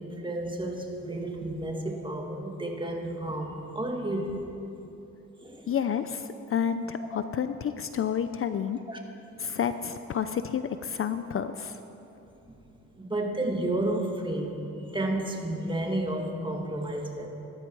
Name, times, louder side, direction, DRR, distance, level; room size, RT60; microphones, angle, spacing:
voice 1, 0.0-4.4 5.4-5.7 8.9-9.0 12.5-12.6 13.0-17.3, right 1 dB, 15° right, 1 dB, 2.2 m, -31 dB
voice 2, 5.7-8.8 9.4-11.8, left 8 dB, 45° left, 10 dB, 0.6 m, -30 dB
18.0 x 13.0 x 4.8 m, 2.9 s
cardioid pair, 90°, 30 cm